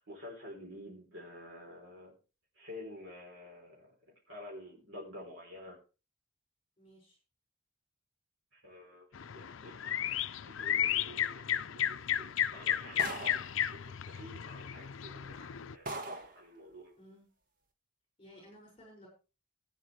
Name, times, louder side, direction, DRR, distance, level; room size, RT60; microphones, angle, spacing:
voice 1, 0.0-2.2 2.6-3.9 4.3-5.8 8.5-16.0 16.3-16.9, left 1 dB, 80° right, -2 dB, 3.7 m, -50 dB
voice 2, 6.8-7.2 17.0-17.3 18.2-19.1, equal, 25° left, -1 dB, 5.9 m, -56 dB
sound 1, 9.1-15.7, left 10 dB, 80° left, 0.5 m, -34 dB
sound 2, 13.0-13.6 14.6-14.7 15.2-15.4 15.9-16.4, right 2 dB, 45° right, 1.5 m, -40 dB
16.5 x 9.3 x 3.3 m, 0.33 s
head